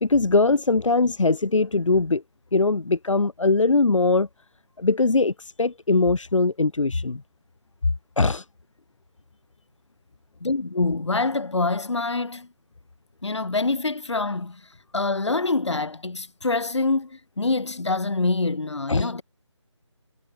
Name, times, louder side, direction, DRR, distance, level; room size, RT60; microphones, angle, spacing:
voice 1, 0.0-2.2 2.5-4.3 4.8-7.2 8.2-8.4 18.9-19.1, left 3 dB, 80° left, 1.2 m, -21 dB
voice 2, 10.4-12.5 13.2-19.2, left 3 dB, 65° left, 4.9 m, -25 dB
figure-of-eight pair, 165°, 16 cm